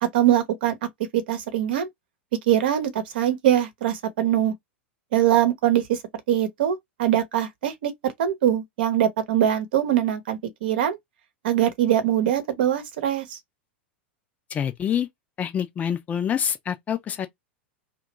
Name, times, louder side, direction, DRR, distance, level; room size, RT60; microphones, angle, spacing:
voice 1, 0.0-0.8 1.1-1.9 2.5-4.5 5.1-6.0 6.3-7.9 8.2-11.0 11.4-13.4, right 11 dB, 55° right, 0.9 m, -22 dB
voice 2, 14.5-15.1 15.4-17.3, left 8 dB, 25° left, 0.6 m, -26 dB
2.9 x 2.4 x 2.6 m
figure-of-eight pair, 90°, 6 cm